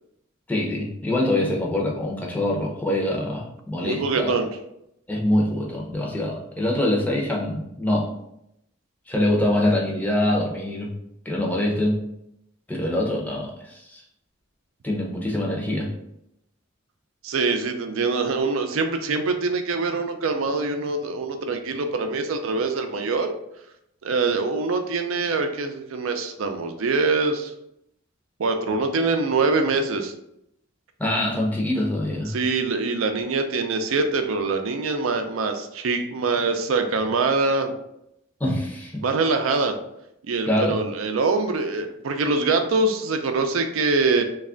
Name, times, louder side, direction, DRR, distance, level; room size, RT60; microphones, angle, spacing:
voice 1, 0.5-4.4 5.1-8.1 9.1-10.9 11.2-12.0 12.7-14.0 14.8-15.9 31.0-32.4 38.4-39.0 40.5-40.8, left 1 dB, 10° left, -3 dB, 0.6 m, -24 dB
voice 2, 3.8-4.5 17.2-23.3 24.0-27.5 28.4-30.1 32.3-37.7 39.0-39.8 40.3-44.2, right 3 dB, 85° right, 6 dB, 0.5 m, -24 dB
3.2 x 2.3 x 3.7 m, 0.80 s
head